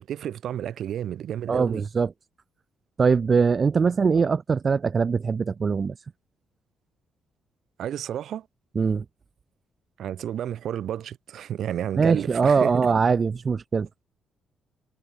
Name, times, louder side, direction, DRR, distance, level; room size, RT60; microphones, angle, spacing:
voice 1, 0.0-1.8 4.1-4.2 7.8-8.4 10.0-12.7, right 10 dB, 70° right, 1.8 m, -31 dB
voice 2, 1.5-2.1 3.0-5.9 8.7-9.0 12.0-13.9, right 5 dB, 40° right, 0.8 m, -22 dB
cardioid pair, 90°, 0 cm